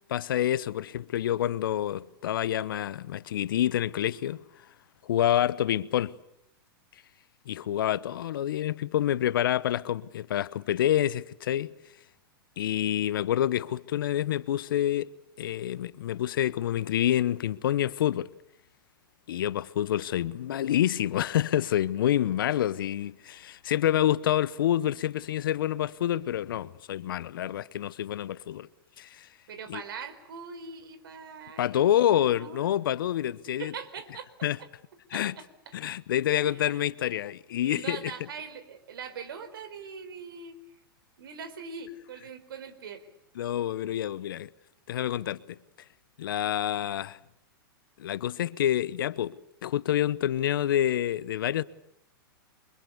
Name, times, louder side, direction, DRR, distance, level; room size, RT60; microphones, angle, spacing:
voice 1, 0.1-4.4 5.0-6.1 7.5-11.7 12.6-15.1 15.4-18.3 19.3-28.7 29.0-29.3 29.7-29.8 31.6-33.7 34.4-34.6 35.1-35.3 35.7-38.1 43.4-44.5 44.9-45.6 46.2-47.2 48.0-51.6, left 11 dB, 65° left, 1.0 m, -27 dB
voice 2, 29.5-32.7 33.6-34.3 34.6-34.7 35.1-35.5 36.4-36.8 37.6-40.6 41.2-43.1, right 5 dB, 70° right, 4.4 m, -42 dB
30.0 x 24.5 x 6.8 m
hypercardioid pair, 110°, 12 cm